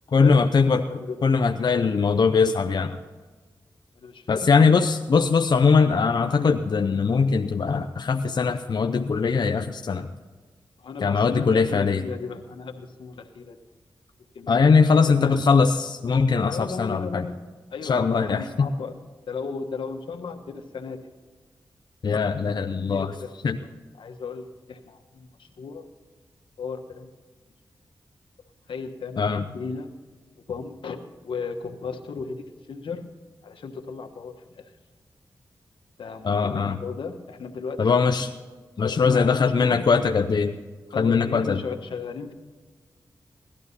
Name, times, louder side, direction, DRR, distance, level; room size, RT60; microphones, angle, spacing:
voice 1, 0.1-0.8 1.2-3.0 4.3-10.1 11.0-12.0 14.5-17.2 17.8-18.7 22.0-23.1 23.4-23.6 29.2-29.4 36.2-36.8 37.8-38.3 38.8-40.5 41.0-41.6, left 5 dB, 60° left, 5 dB, 0.7 m, -21 dB
voice 2, 0.9-1.2 4.0-4.7 10.8-13.6 14.3-14.7 15.2-15.4 16.5-17.4 17.7-18.9 19.3-21.1 22.7-23.7 23.9-25.8 26.6-27.1 28.7-29.9 30.5-31.0 31.2-33.0 33.4-34.7 36.0-37.9 38.8-39.8 40.9-42.3, left 5 dB, 85° left, 6 dB, 1.3 m, -35 dB
18.0 x 12.0 x 4.1 m, 1.4 s
cardioid pair, 55°, 8 cm